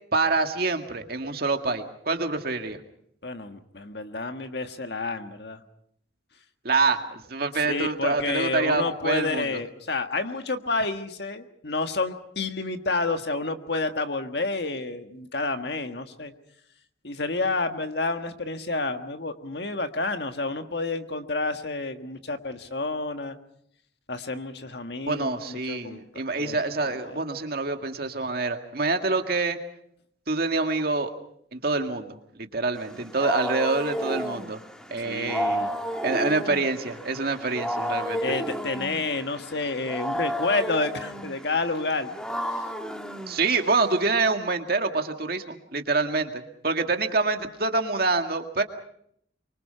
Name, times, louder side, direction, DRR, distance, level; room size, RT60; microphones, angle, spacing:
voice 1, 0.1-2.8 6.6-9.6 25.1-29.6 30.3-31.1 31.5-34.6 34.9-35.6 36.0-38.2 43.3-48.6, right 3 dB, 55° right, 5 dB, 2.0 m, -26 dB
voice 2, 3.2-5.6 7.7-16.3 17.0-23.3 24.1-26.0 26.4-26.6 26.8-27.2 35.0-35.7 38.2-42.1, left 3 dB, 60° left, 7 dB, 1.6 m, -29 dB
Wild animals, 32.8-44.0, equal, 5° left, 1.6 m, -32 dB
25.0 x 24.0 x 5.7 m, 0.68 s
head